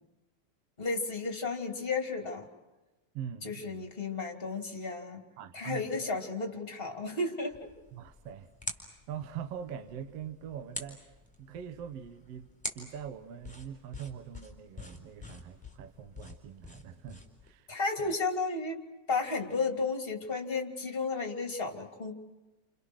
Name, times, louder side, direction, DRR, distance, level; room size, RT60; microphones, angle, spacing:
voice 1, 0.8-2.5 3.4-5.2 5.5-7.7 17.7-18.8 19.1-22.1, left 3 dB, 20° left, 3.0 m, -33 dB
voice 2, 3.1-3.9 5.4-6.1 7.9-8.5 9.1-11.1 11.4-17.7 18.0-18.1, right 8 dB, 60° right, 2.1 m, -43 dB
sound 1, 7.5-17.5, left 2 dB, ahead, 3.9 m, -46 dB
30.0 x 29.0 x 6.4 m
omnidirectional pair, 3.5 m